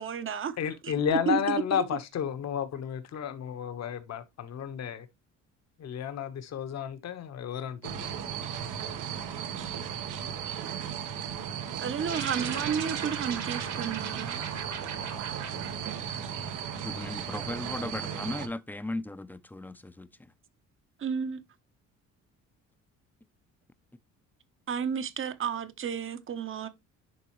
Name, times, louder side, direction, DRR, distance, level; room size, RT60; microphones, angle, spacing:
voice 1, 0.0-0.5 0.8-1.8 11.8-14.4 21.0-21.4 24.7-26.7, right 7 dB, 40° right, 0.9 m, -32 dB
voice 2, 0.6-5.0 5.8-8.1, left 8 dB, 60° left, 1.3 m, -32 dB
sound 1, 7.8-18.5, right 8 dB, 85° right, 1.3 m, -36 dB
sound 2, 12.1-16.8, right 7 dB, 60° right, 1.7 m, -39 dB
voice 3, 16.8-20.3, left 2 dB, 5° left, 0.6 m, -37 dB
11.0 x 3.7 x 3.1 m
cardioid pair, 95°, 30 cm